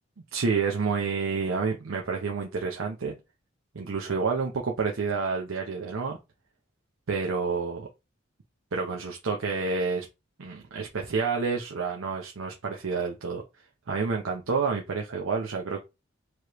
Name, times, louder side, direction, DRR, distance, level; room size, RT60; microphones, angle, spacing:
voice 1, 0.3-3.1 3.7-6.2 7.1-7.9 8.7-10.1 10.4-13.4 13.9-15.8, right 5 dB, 90° right, 0.7 m, -29 dB
4.8 x 3.1 x 3.0 m
head